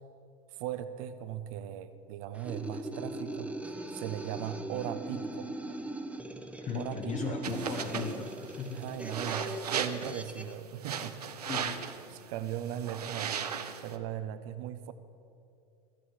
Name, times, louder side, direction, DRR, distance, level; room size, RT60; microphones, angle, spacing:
voice 1, 0.5-3.5 3.9-5.5 6.7-7.4 8.7-11.5 12.1-13.5 13.8-14.9, right 10 dB, 60° right, 12 dB, 0.9 m, -38 dB
sound 1, 2.3-10.5, right 1 dB, 5° right, 1.0 m, -40 dB
voice 2, 6.6-8.8 11.4-11.9, left 5 dB, 35° left, 2 dB, 1.2 m, -37 dB
sound 2, 7.4-14.0, right 7 dB, 80° right, 0.8 m, -37 dB
14.0 x 10.5 x 6.4 m, 2.5 s
figure-of-eight pair, 80°, 20 cm